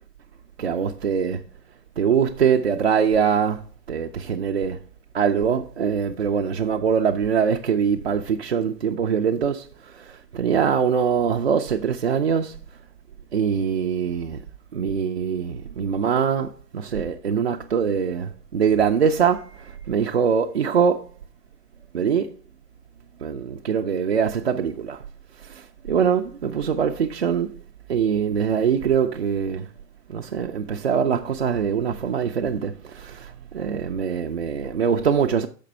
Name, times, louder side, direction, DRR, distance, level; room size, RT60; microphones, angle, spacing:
voice 1, 0.6-1.4 2.0-3.6 3.9-4.8 5.1-9.7 9.9-12.6 13.3-14.4 14.7-21.1 21.9-22.3 23.2-25.0 25.4-27.6 27.9-29.7 30.1-35.5, right 7 dB, 45° right, 0.4 m, -23 dB
6.5 x 5.1 x 5.3 m
figure-of-eight pair, 115°, 50 cm